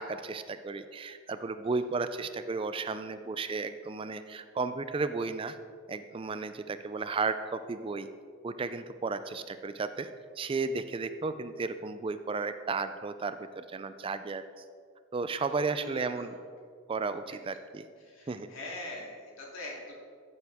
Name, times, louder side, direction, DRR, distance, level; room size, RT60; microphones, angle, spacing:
voice 1, 0.0-5.6 5.9-8.1 8.4-10.1 10.4-14.4 15.1-16.4 16.9-17.8 18.3-18.5, right 4 dB, 25° right, 11 dB, 0.3 m, -34 dB
voice 2, 4.2-4.6 15.8-16.4 18.0-19.9, left 2 dB, 75° left, -3 dB, 3.0 m, -43 dB
14.0 x 8.1 x 3.5 m, 2.1 s
head